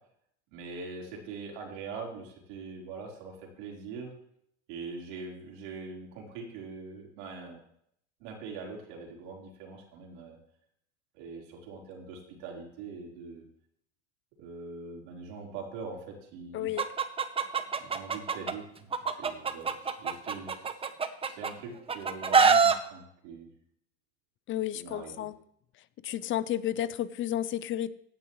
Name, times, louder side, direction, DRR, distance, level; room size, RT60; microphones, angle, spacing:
voice 1, 0.5-4.1 4.7-7.6 8.2-10.4 11.1-13.4 14.4-16.7 17.8-20.9 21.2-23.5 24.7-25.3, right 4 dB, 70° right, -2 dB, 4.2 m, -43 dB
voice 2, 16.5-16.9 24.5-25.3 26.0-27.9, left 12 dB, 35° left, 16 dB, 0.6 m, -32 dB
Chicken rooster, 16.8-18.5 18.9-21.5 21.9-22.8, right 5 dB, 15° right, 0.8 m, -24 dB
16.0 x 9.7 x 3.1 m, 0.71 s
supercardioid pair, 120°, 36 cm